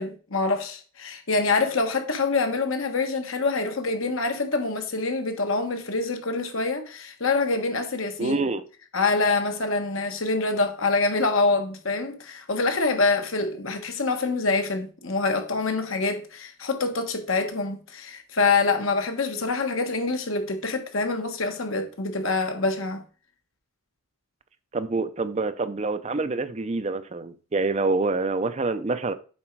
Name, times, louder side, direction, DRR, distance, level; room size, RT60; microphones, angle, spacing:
voice 1, 0.0-8.5 8.9-23.0, left 3 dB, 70° left, 1.4 m, -25 dB
voice 2, 8.2-8.6 24.7-29.1, right 3 dB, 30° right, 0.5 m, -26 dB
7.4 x 5.1 x 4.6 m
head